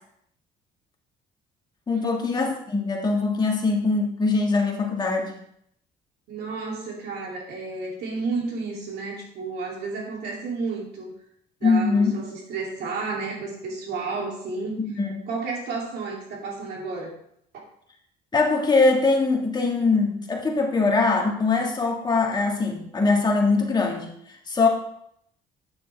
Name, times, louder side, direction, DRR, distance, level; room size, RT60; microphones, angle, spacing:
voice 1, 1.9-5.3 11.6-12.1 14.8-15.2 18.3-24.7, left 3 dB, 25° left, 0 dB, 1.7 m, -22 dB
voice 2, 6.3-11.1 11.6-14.8 15.3-17.1, right 4 dB, 75° right, -2 dB, 2.7 m, -31 dB
9.0 x 6.7 x 3.3 m, 0.71 s
cardioid pair, 110°, 17 cm